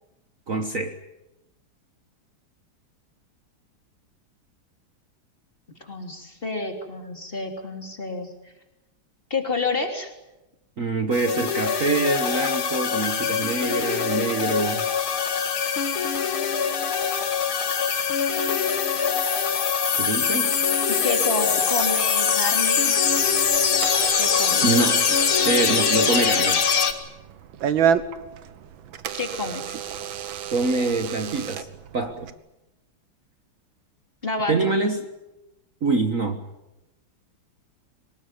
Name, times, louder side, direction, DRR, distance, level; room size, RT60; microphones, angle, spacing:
voice 1, 0.5-1.0 10.8-14.9 20.0-20.6 24.6-25.2 25.4-26.6 30.5-31.7 31.9-32.3 34.5-35.1 35.8-36.5, right 3 dB, 45° right, 6 dB, 1.6 m, -25 dB
voice 2, 5.8-8.3 9.3-10.1 20.9-23.0 24.2-24.7 29.1-29.6 34.2-34.8, left 3 dB, 25° left, 3 dB, 3.5 m, -29 dB
sound 1, 11.1-26.9, left 6 dB, 85° left, 2.7 m, -23 dB
Door / Alarm, 23.1-32.3, right 8 dB, 70° right, 1.9 m, -31 dB
24.0 x 20.0 x 9.5 m, 0.95 s
omnidirectional pair, 2.3 m